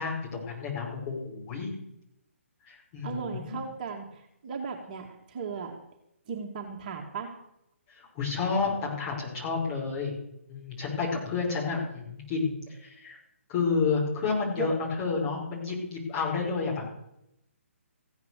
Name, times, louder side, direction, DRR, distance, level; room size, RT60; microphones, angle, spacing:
voice 1, 0.0-1.7 2.7-3.6 8.2-10.1 10.5-13.2 13.5-16.8, left 4 dB, 30° left, -2 dB, 5.9 m, -30 dB
voice 2, 3.0-5.8 6.3-7.3 14.5-14.7, right 5 dB, 35° right, 2 dB, 2.4 m, -36 dB
15.5 x 10.0 x 6.6 m, 0.78 s
figure-of-eight pair, 145°, 7 cm